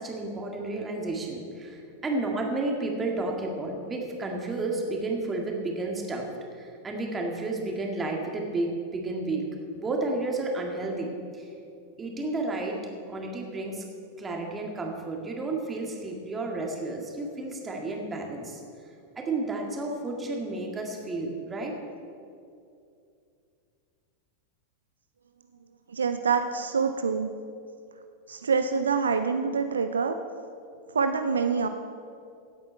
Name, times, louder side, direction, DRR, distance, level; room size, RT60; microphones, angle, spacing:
voice 1, 0.0-9.5 9.7-11.5 12.0-12.8 13.1-13.8 14.2-18.6 19.2-21.8, right 2 dB, 15° right, 1 dB, 2.0 m, -32 dB
voice 2, 25.9-27.3 28.3-30.2 30.9-31.7, right 5 dB, 70° right, 8 dB, 0.5 m, -26 dB
16.5 x 8.6 x 4.5 m, 2.5 s
figure-of-eight pair, 90°, 0 cm